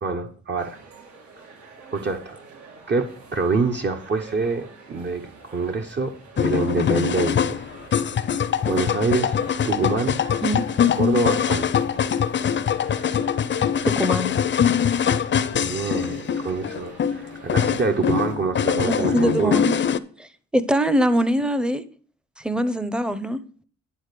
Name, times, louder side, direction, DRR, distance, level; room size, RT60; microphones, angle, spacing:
voice 1, 0.0-0.8 1.9-2.4 2.9-7.7 8.7-10.2 10.9-11.9 15.5-19.6, right 4 dB, 35° right, 4 dB, 1.0 m, -26 dB
sound 1, 0.6-18.3, right 3 dB, 75° right, 2.6 m, -46 dB
sound 2, 6.4-20.0, left 8 dB, 40° left, 0.6 m, -23 dB
voice 2, 14.0-14.4 18.9-19.7 20.2-20.3 20.5-21.8 22.4-23.4, equal, 5° right, 13 dB, 0.7 m, -22 dB
10.0 x 4.1 x 6.7 m, 0.44 s
cardioid pair, 90°, 30 cm